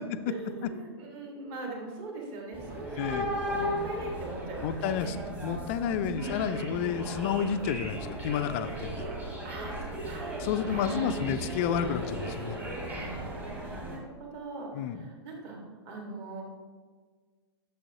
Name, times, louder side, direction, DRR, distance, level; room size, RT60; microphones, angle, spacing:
voice 1, 0.0-5.2 6.0-6.5 9.4-10.3 10.7-11.1 12.8-15.6 15.8-16.4, right 2 dB, 35° right, 0 dB, 1.6 m, -41 dB
sound 1, 2.5-14.0, equal, 10° right, 1.1 m, -36 dB
voice 2, 3.0-3.3 4.6-5.2 5.4-9.1 10.4-12.6 14.7-15.0, left 8 dB, 30° left, 11 dB, 0.3 m, -30 dB
8.8 x 6.7 x 2.8 m, 1.5 s
figure-of-eight pair, 110°, 14 cm